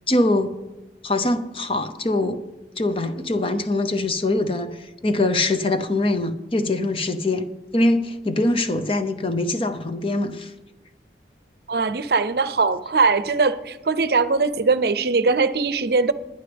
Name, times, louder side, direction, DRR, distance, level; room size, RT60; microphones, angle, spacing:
voice 1, 0.1-0.5 1.0-2.4 2.8-10.5, left 2 dB, 30° left, 9 dB, 0.8 m, -23 dB
voice 2, 11.7-16.1, right 4 dB, 65° right, 13 dB, 0.6 m, -21 dB
20.5 x 10.5 x 3.5 m, 1.0 s
head